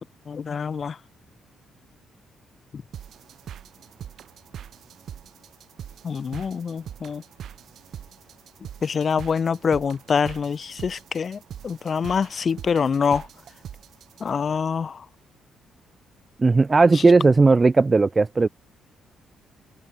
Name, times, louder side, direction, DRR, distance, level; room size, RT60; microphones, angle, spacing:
voice 1, 0.3-1.0 6.0-7.2 8.8-13.3 14.2-15.0 16.9-17.0, left 6 dB, 45° left, 1.2 m, -25 dB
sound 1, 2.9-14.3, right 9 dB, 65° right, 6.5 m, -42 dB
voice 2, 16.4-18.5, right 3 dB, 25° right, 0.7 m, -16 dB
cardioid pair, 90°, 0 cm